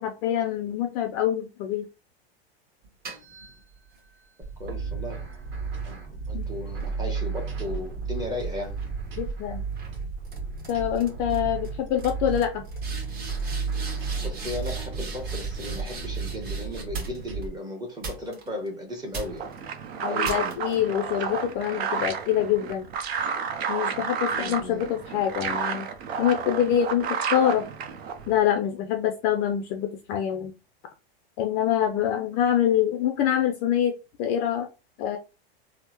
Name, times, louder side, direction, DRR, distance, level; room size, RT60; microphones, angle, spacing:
voice 1, 0.0-1.9 6.3-6.5 9.2-9.6 10.7-12.6 20.0-22.9 23.7-25.9 26.2-27.7 28.3-30.5 31.4-33.9 34.2-34.7 35.0-35.2, left 10 dB, 35° left, 0.4 m, -25 dB
sound 1, 2.8-4.1 4.7-8.2 8.6-9.0 9.8-10.0 10.2-10.7 11.0-11.4 11.6-11.7 12.0-17.4 18.0-18.7 19.1-19.6 20.2-20.7, right 3 dB, 30° right, 1.2 m, -41 dB
sound 2, 4.4-17.5, right 5 dB, 45° right, 1.6 m, -33 dB
voice 2, 4.6-5.2 5.8-6.0 6.3-8.8 14.2-19.5 20.1-20.5 24.3-24.8, left 1 dB, 15° right, 0.8 m, -36 dB
sound 3, 19.1-28.4, right 6 dB, 75° right, 0.7 m, -31 dB
3.4 x 2.0 x 2.9 m
supercardioid pair, 135°, 31 cm